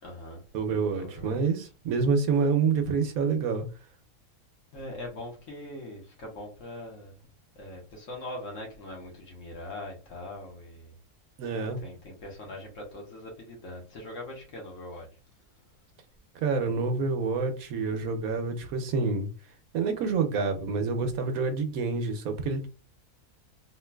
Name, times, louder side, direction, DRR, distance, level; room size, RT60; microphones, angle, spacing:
voice 1, 0.0-0.4 0.9-1.5 4.7-7.2 7.5-10.9 11.8-15.1, left 1 dB, 55° left, 1.5 m, -41 dB
voice 2, 0.5-3.6 11.4-11.8 16.4-19.3 19.7-22.7, right 4 dB, 70° right, 1.0 m, -27 dB
3.7 x 2.8 x 2.3 m
omnidirectional pair, 1.6 m